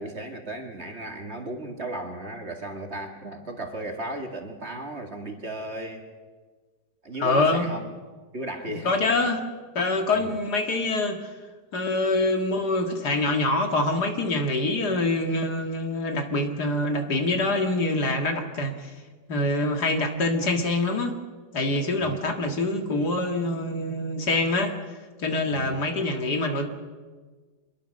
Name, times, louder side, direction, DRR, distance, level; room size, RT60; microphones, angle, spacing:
voice 1, 0.0-6.0 7.0-7.8 8.3-9.0 10.1-10.4 22.0-22.2 25.5-25.8, right 1 dB, 35° right, 4 dB, 2.5 m, -35 dB
voice 2, 7.2-7.7 8.7-9.4 9.7-11.3 11.7-18.9 19.3-21.2 21.5-24.7 25.2-26.7, left 2 dB, 60° left, 5 dB, 2.5 m, -25 dB
26.0 x 21.5 x 6.5 m, 1.4 s
omnidirectional pair, 1.9 m